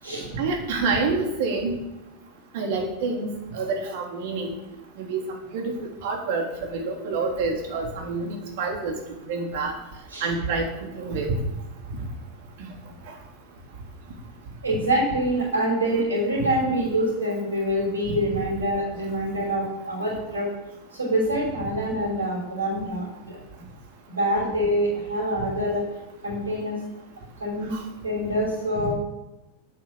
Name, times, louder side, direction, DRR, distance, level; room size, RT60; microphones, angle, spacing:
voice 1, 0.4-1.8 2.5-4.6 5.0-9.0 9.3-9.7 10.2-11.4 13.1-13.2 27.7-27.8, right 3 dB, 50° right, 1 dB, 3.5 m, -27 dB
voice 2, 14.6-20.5 20.9-23.4 24.1-25.8 26.2-26.8 27.4-27.8 28.0-28.9, right 1 dB, 75° right, -3 dB, 5.7 m, -25 dB
11.5 x 9.7 x 7.4 m, 1.0 s
figure-of-eight pair, 90°, 0 cm